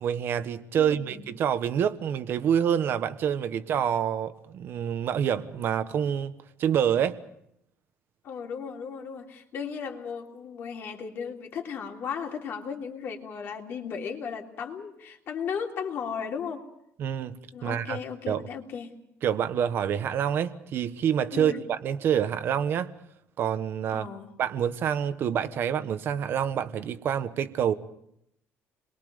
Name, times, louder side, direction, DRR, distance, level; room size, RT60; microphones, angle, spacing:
voice 1, 0.0-6.3 6.6-7.2 17.0-18.0 18.3-18.4 19.2-22.9 23.4-24.1 24.4-27.7, right 9 dB, 45° right, 11 dB, 1.3 m, -27 dB
voice 2, 0.7-1.2 8.2-16.6 17.5-18.9 21.3-21.6 23.9-24.3, left 6 dB, 45° left, 2 dB, 3.1 m, -36 dB
30.0 x 22.5 x 5.1 m, 0.75 s
cardioid pair, 170°, 5 cm